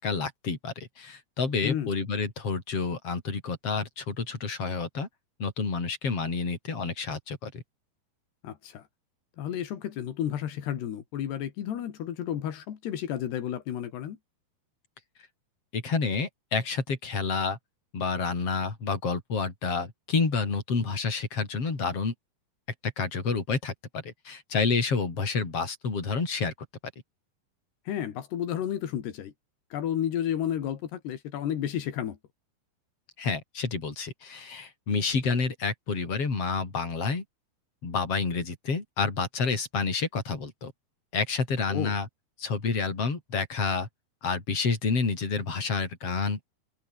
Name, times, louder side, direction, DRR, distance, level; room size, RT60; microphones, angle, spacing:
voice 1, 0.0-5.1 5.4-7.6 15.7-17.6 17.9-22.1 22.8-26.5 33.2-37.2 37.8-40.7 41.1-42.1 42.4-43.9 44.2-46.5, left 4 dB, 35° left, 5.9 m, -29 dB
voice 2, 8.4-8.8 9.4-14.2 27.9-29.3 29.7-32.2 41.7-42.0, left 10 dB, 85° left, 4.4 m, -32 dB
omnidirectional pair, 4.6 m